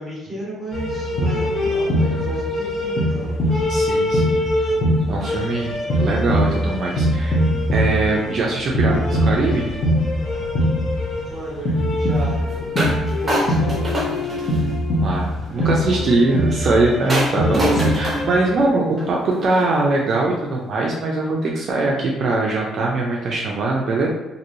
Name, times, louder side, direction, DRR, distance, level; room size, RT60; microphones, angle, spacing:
voice 1, 0.0-3.4 11.2-12.8 13.0-14.3 15.6-16.2 18.8-19.0, right 1 dB, ahead, -6 dB, 1.1 m, -34 dB
sound 1, 0.7-18.6, equal, 35° left, 0.6 m, -22 dB
voice 2, 3.7-4.4 5.1-7.4 7.7-9.7 15.0-24.1, right 2 dB, 40° right, -2 dB, 0.4 m, -21 dB
sound 2, 12.8-13.0 13.3-14.8 17.1-19.8, equal, 15° right, 0.8 m, -25 dB
3.0 x 2.6 x 2.6 m, 1.2 s
cardioid pair, 170°, 0 cm